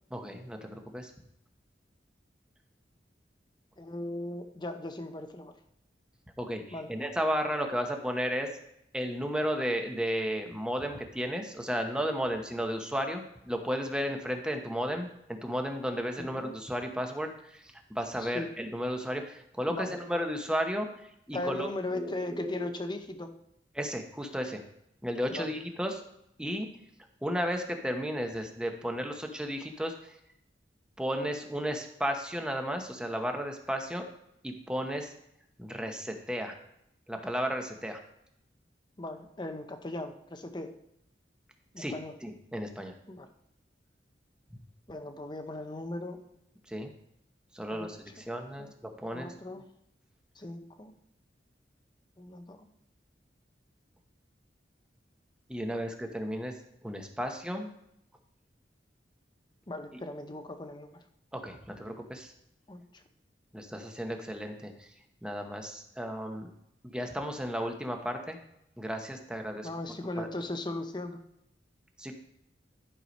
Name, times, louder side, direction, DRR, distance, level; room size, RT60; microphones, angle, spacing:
voice 1, 0.1-1.1 6.4-8.5 8.9-22.7 23.7-24.6 25.0-26.0 26.4-26.7 27.2-30.2 31.0-34.0 34.4-35.1 35.6-36.6 37.1-38.0 41.8-41.9 42.2-42.9 46.7-46.9 47.5-49.3 55.5-56.5 56.8-57.7 61.3-62.3 63.5-64.9 65.2-66.5 66.9-68.4 68.8-69.7 70.2-70.3 72.0-72.2, equal, 5° right, 4 dB, 0.9 m, -34 dB
voice 2, 3.8-5.5 6.7-6.9 18.2-18.5 19.7-20.0 21.3-23.3 25.3-25.5 39.0-40.7 41.7-42.1 43.1-43.3 44.9-46.2 47.7-47.9 48.6-48.7 49.1-49.6 50.4-50.9 52.2-52.6 55.7-55.8 59.7-61.0 62.7-63.0 69.6-71.2, left 2 dB, 25° left, 7 dB, 0.8 m, -38 dB
11.0 x 4.7 x 5.3 m, 0.76 s
head